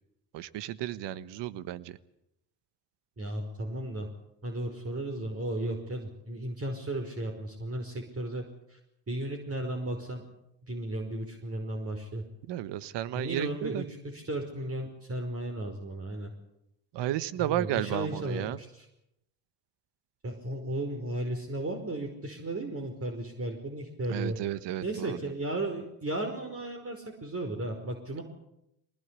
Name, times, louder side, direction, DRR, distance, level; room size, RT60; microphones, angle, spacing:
voice 1, 0.3-2.0 12.5-13.8 16.9-18.6 24.1-25.3, right 13 dB, 75° right, 15 dB, 1.4 m, -33 dB
voice 2, 3.2-4.1 4.4-8.4 8.7-8.8 9.1-10.2 10.7-12.2 13.1-16.3 17.4-18.9 20.2-24.4 24.8-28.2, right 1 dB, 30° right, 3 dB, 5.2 m, -35 dB
24.0 x 19.5 x 8.4 m, 0.82 s
supercardioid pair, 60°, 43 cm